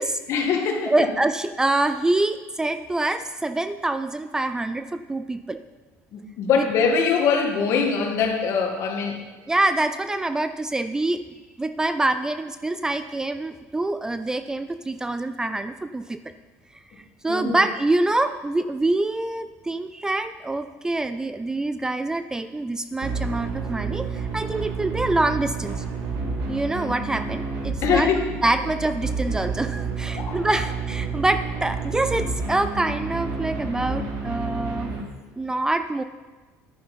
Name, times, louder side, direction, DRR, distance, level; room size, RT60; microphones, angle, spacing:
voice 1, 0.3-0.9 6.1-9.2 17.3-17.6 27.8-28.4 30.2-30.4, left 5 dB, 55° left, 3 dB, 2.1 m, -23 dB
voice 2, 0.9-5.6 6.5-6.6 9.5-11.2 11.6-16.2 17.2-25.8 26.5-28.1 28.4-34.9 35.4-36.0, right 2 dB, 10° right, 10 dB, 0.4 m, -25 dB
sound 1, 23.0-35.0, right 4 dB, 70° right, 2.8 m, -30 dB
11.0 x 8.9 x 5.7 m, 1.3 s
cardioid pair, 135°, 6 cm